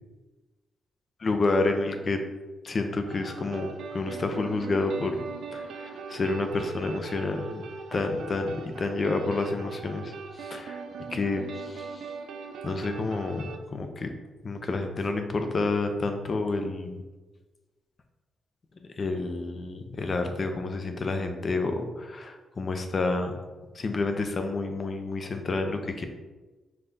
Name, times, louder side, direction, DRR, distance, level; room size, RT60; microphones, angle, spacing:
voice 1, 1.2-2.2 2.6-5.2 5.5-7.6 7.9-10.1 10.4-10.8 11.1-11.9 12.6-14.1 14.4-17.0 19.0-23.4 23.8-26.1, left 3 dB, 30° left, 5 dB, 0.4 m, -29 dB
sound 1, 3.1-13.6, right 5 dB, 70° right, 0.4 m, -41 dB
5.3 x 2.3 x 3.9 m, 1.2 s
wide cardioid pair, 175°, 0 cm